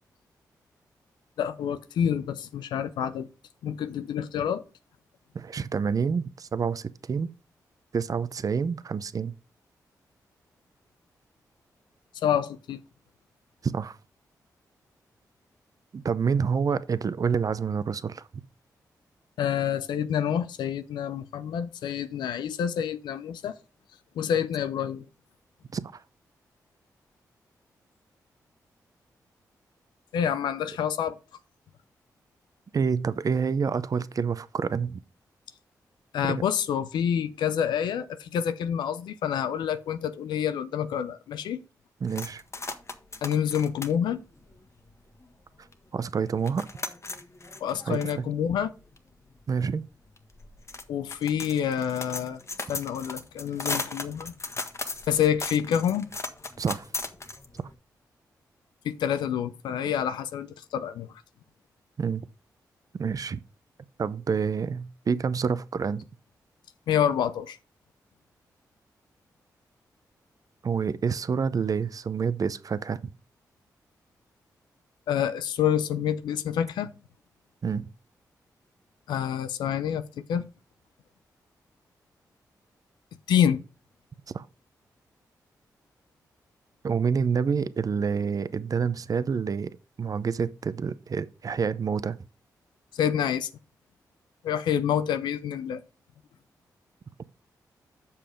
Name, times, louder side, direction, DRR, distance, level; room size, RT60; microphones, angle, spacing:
voice 1, 1.4-3.3 3.6-4.6 12.2-12.8 19.4-23.6 24.2-25.0 30.1-31.2 36.1-41.6 43.2-44.2 47.6-48.7 50.9-52.4 52.7-54.3 55.1-56.1 58.8-61.1 66.9-67.6 75.1-76.9 79.1-80.0 80.3-80.4 83.3-83.6 92.9-93.5 94.4-95.8, left 9 dB, 90° left, 0.6 m, -27 dB
voice 2, 5.3-7.3 7.9-9.3 13.6-14.0 15.9-18.3 25.7-26.0 32.7-35.0 36.2-36.4 42.0-42.4 45.9-46.7 47.9-48.0 49.5-49.9 56.6-56.9 62.0-62.3 63.0-63.4 64.0-66.1 70.6-73.1 77.6-77.9 84.3-84.4 86.8-89.7 90.0-92.2 97.2-97.3, right 6 dB, 50° right, 0.7 m, -28 dB
sound 1, 42.1-45.3 45.7-45.8 46.0-57.7, left 3 dB, 40° left, 1.4 m, -37 dB
7.1 x 5.6 x 5.0 m
supercardioid pair, 50°, 7 cm